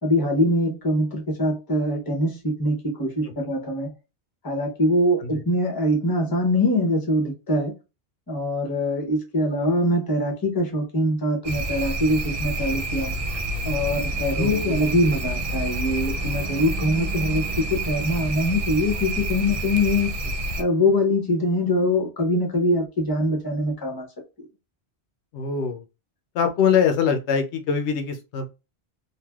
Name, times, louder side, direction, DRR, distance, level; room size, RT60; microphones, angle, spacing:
voice 1, 0.0-3.9 4.4-7.7 8.3-13.2 13.6-20.1 20.6-24.1 24.4-24.5, left 1 dB, 20° left, 0.8 m, -23 dB
sound 1, 11.4-20.6, right 1 dB, 65° right, 0.3 m, -28 dB
voice 2, 14.3-14.8 25.3-25.8 26.3-28.5, left 6 dB, 80° left, 0.8 m, -23 dB
3.2 x 2.5 x 2.3 m
omnidirectional pair, 1.1 m